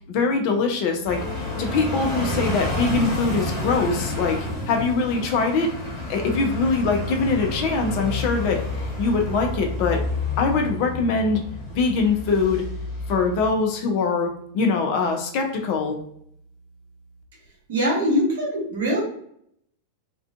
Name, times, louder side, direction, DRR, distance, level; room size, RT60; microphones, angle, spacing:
voice 1, 0.1-4.4 4.7-5.7 6.1-8.6 9.0-10.0 10.4-11.4 11.7-12.6 13.1-16.0, left 4 dB, 45° left, 3 dB, 0.5 m, -23 dB
sound 1, 1.0-13.6, left 2 dB, 20° left, 1.3 m, -30 dB
voice 2, 17.7-19.0, equal, 60° right, -3 dB, 1.0 m, -22 dB
2.4 x 2.2 x 2.4 m, 0.68 s
figure-of-eight pair, 90°, 0 cm